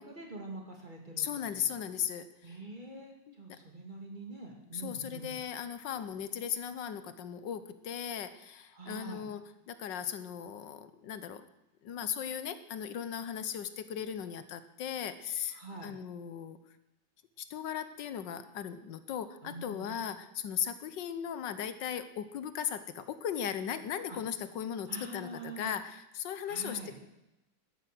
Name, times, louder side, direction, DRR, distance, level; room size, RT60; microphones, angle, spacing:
voice 1, 0.0-1.3 1.5-1.6 2.4-5.4 8.7-9.2 15.5-15.9 19.4-19.9 24.1-24.2 24.9-25.7 26.5-26.9, right 2 dB, 25° right, 1 dB, 2.6 m, -45 dB
voice 2, 1.2-2.6 3.3-3.4 4.7-9.4 9.7-11.5 11.8-16.6 17.4-27.0, left 8 dB, 75° left, 12 dB, 1.5 m, -37 dB
13.0 x 10.5 x 7.8 m, 0.93 s
omnidirectional pair, 2.0 m